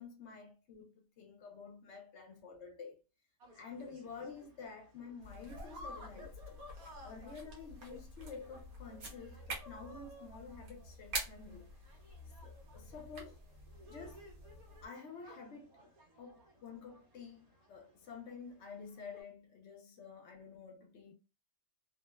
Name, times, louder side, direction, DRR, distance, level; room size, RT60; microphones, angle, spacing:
voice 1, 0.0-3.0 3.5-6.6 7.0-11.7 12.4-13.4 13.9-14.3 14.8-15.9 16.2-21.1, left 5 dB, 60° left, 0.9 m, -50 dB
sound 1, 3.4-19.2, left 1 dB, 90° right, 1.2 m, -57 dB
sound 2, 5.2-14.9, right 2 dB, 70° right, 1.3 m, -48 dB
sound 3, 7.2-10.8, right 3 dB, 55° right, 0.5 m, -61 dB
2.9 x 2.0 x 2.2 m
omnidirectional pair, 1.5 m